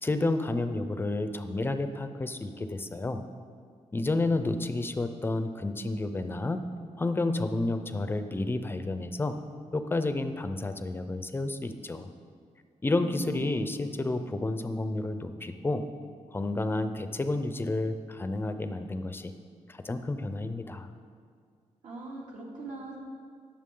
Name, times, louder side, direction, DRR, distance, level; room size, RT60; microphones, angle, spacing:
voice 1, 0.0-3.2 3.9-6.6 7.0-9.4 9.7-12.1 12.8-15.8 16.3-19.3 19.7-20.9, left 2 dB, 15° left, 9 dB, 0.5 m, -30 dB
voice 2, 13.0-13.6 21.8-23.0, right 2 dB, 75° right, -3 dB, 2.4 m, -41 dB
19.0 x 7.1 x 3.8 m, 2.1 s
wide cardioid pair, 170°, 13 cm